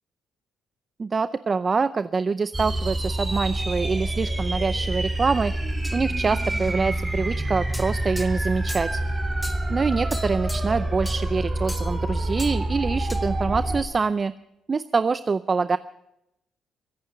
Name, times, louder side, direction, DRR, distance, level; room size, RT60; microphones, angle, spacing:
voice 1, 1.0-5.5 5.9-9.0 9.7-14.3 14.7-15.8, right 4 dB, 35° right, 13 dB, 0.5 m, -25 dB
sound 1, 2.5-13.8, right 1 dB, 20° right, 3.3 m, -27 dB
sound 2, 5.8-6.7 7.7-9.0 9.4-9.7 10.1-10.8 11.1-11.2 11.7-12.0 12.4-12.6 13.1-13.3, left 1 dB, 5° left, 1.5 m, -39 dB
24.0 x 8.8 x 6.8 m, 0.85 s
cardioid pair, 90°, 0 cm